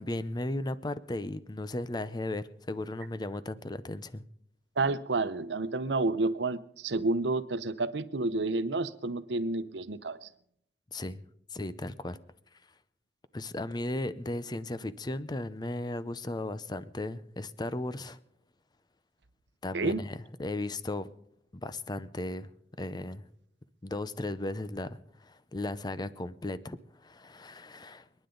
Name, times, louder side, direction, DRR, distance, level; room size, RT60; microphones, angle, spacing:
voice 1, 0.0-4.2 10.9-11.2 11.5-12.2 13.3-18.2 19.6-21.1 21.6-22.5 22.8-23.2 23.8-28.1, left 2 dB, 25° left, 0.6 m, -36 dB
voice 2, 4.8-10.3 19.7-20.0, right 3 dB, 90° right, 0.8 m, -30 dB
29.5 x 10.0 x 3.9 m
head